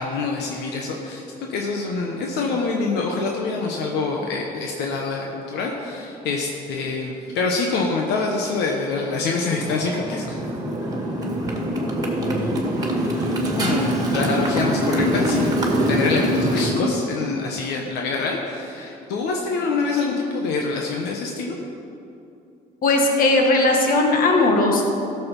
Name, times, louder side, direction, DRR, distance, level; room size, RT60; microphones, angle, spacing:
voice 1, 0.0-10.4 13.6-15.5 15.9-21.6, left 4 dB, 85° left, 0 dB, 1.2 m, -25 dB
Motorcycle, 9.5-16.7, equal, 20° right, 1.9 m, -23 dB
voice 2, 22.8-24.8, left 2 dB, 55° left, 1 dB, 1.9 m, -18 dB
14.0 x 6.9 x 5.4 m, 2.7 s
cardioid pair, 110°, 17 cm